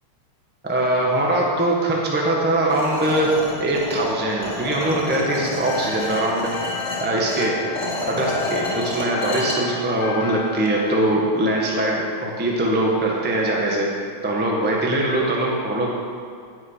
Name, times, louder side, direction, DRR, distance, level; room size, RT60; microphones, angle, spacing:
voice 1, 0.6-3.3 3.6-6.5 7.0-7.5 8.1-13.9 14.2-16.0, right 1 dB, 5° right, -3 dB, 0.7 m, -22 dB
sound 1, 2.7-9.6, left 1 dB, 25° left, 2.5 m, -30 dB
sound 2, 5.3-13.1, left 8 dB, 75° left, 1.8 m, -34 dB
17.0 x 6.8 x 5.8 m, 2.2 s
omnidirectional pair, 3.6 m